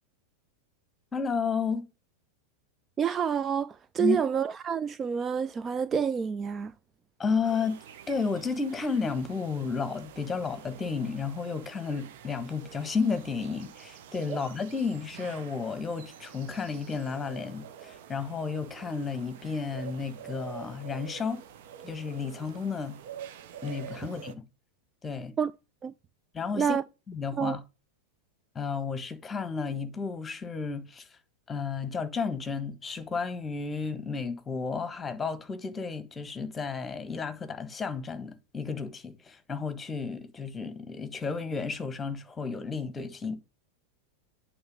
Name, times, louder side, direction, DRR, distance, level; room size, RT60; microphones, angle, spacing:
voice 1, 1.1-1.9 4.0-4.2 7.2-7.8 8.1-21.4 21.8-23.0 23.6-24.3 25.0-25.3 26.3-26.8 27.1-27.6 28.5-31.1 31.5-43.4, left 5 dB, 15° left, 1.2 m, -32 dB
voice 2, 3.0-6.7 14.3-14.4 25.4-25.5 25.8-25.9 26.5-26.8 27.4-27.6, right 7 dB, 20° right, 0.3 m, -28 dB
sound 1, 7.4-24.3, right 9 dB, 55° right, 0.9 m, -47 dB
8.7 x 4.2 x 5.2 m
figure-of-eight pair, 90°, 0 cm